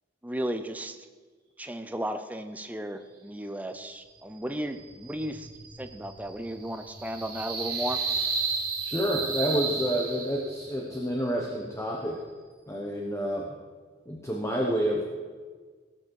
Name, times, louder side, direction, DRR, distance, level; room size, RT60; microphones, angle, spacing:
voice 1, 0.2-1.0 1.6-5.5 5.8-8.0, right 1 dB, 10° right, 8 dB, 0.6 m, -34 dB
sound 1, 4.7-10.7, right 5 dB, 50° right, 2.3 m, -33 dB
voice 2, 8.8-12.2 12.7-13.5 14.1-15.0, equal, 15° left, -1 dB, 1.1 m, -29 dB
17.5 x 7.6 x 4.8 m, 1.5 s
head